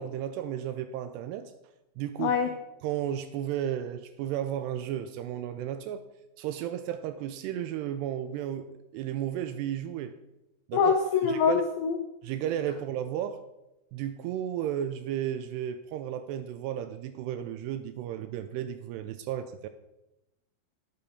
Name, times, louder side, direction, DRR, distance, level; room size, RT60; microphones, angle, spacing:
voice 1, 0.0-1.5 2.0-2.4 2.8-6.0 6.4-10.2 10.7-10.9 11.2-11.7 12.2-13.4 13.9-19.7, right 10 dB, 80° right, 11 dB, 2.5 m, -33 dB
voice 2, 2.2-2.5 10.7-12.0, left 6 dB, 85° left, 4 dB, 2.0 m, -24 dB
11.5 x 8.9 x 4.2 m, 0.94 s
omnidirectional pair, 5.1 m